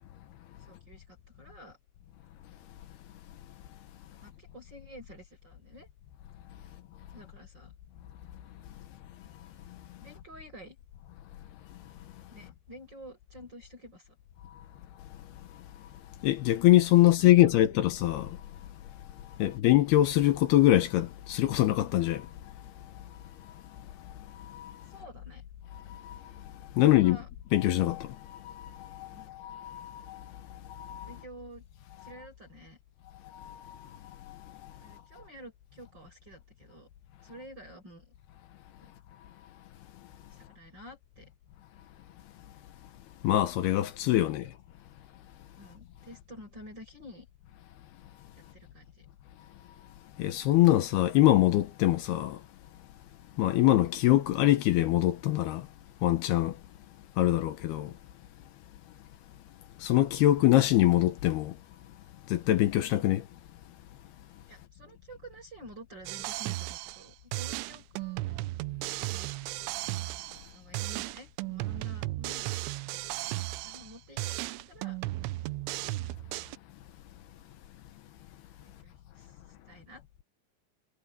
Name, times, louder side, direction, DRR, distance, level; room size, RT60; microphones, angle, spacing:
voice 1, 0.6-1.8 4.1-5.9 7.1-7.7 10.0-10.8 12.3-14.2 17.0-17.6 19.4-19.7 24.9-25.4 26.8-27.3 29.1-29.3 31.1-31.6 32.0-32.8 34.8-36.9 37.2-38.1 38.8-38.9 40.3-41.3 44.2-44.5 45.6-47.3 48.4-49.1 64.5-68.5 69.0-69.3 70.4-72.6 73.2-75.0 78.6-80.2, equal, 25° right, 7.0 m, -50 dB
voice 2, 16.2-18.4 19.4-22.3 24.4-24.7 25.9-26.2 26.7-27.2 27.5-31.1 33.2-33.8 34.2-34.7 43.2-44.5 50.2-52.4 53.4-55.7 56.0-56.6 57.2-57.9 59.8-61.6 62.3-63.2, left 15 dB, 75° left, 2.7 m, -24 dB
sound 1, 66.1-67.1 67.3-70.5 70.7-73.9 74.2-76.6, right 19 dB, 90° right, 3.0 m, -35 dB
omnidirectional pair, 5.3 m